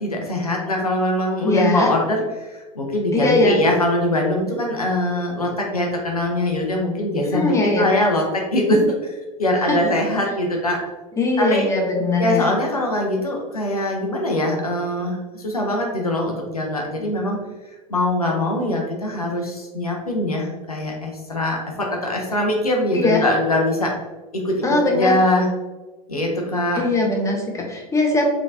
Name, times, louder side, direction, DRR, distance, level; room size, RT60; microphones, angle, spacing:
voice 1, 0.0-8.8 9.4-10.8 11.4-11.6 12.2-17.4 17.9-23.9 24.3-25.5 26.1-26.8, left 1 dB, 90° left, 0 dB, 0.6 m, -22 dB
voice 2, 1.4-1.9 3.1-3.6 7.3-7.9 9.7-9.8 11.2-12.5 22.9-23.2 24.6-25.1 26.7-28.3, left 2 dB, 15° left, 0 dB, 0.9 m, -20 dB
3.8 x 3.3 x 2.5 m, 1.2 s
figure-of-eight pair, 75°, 18 cm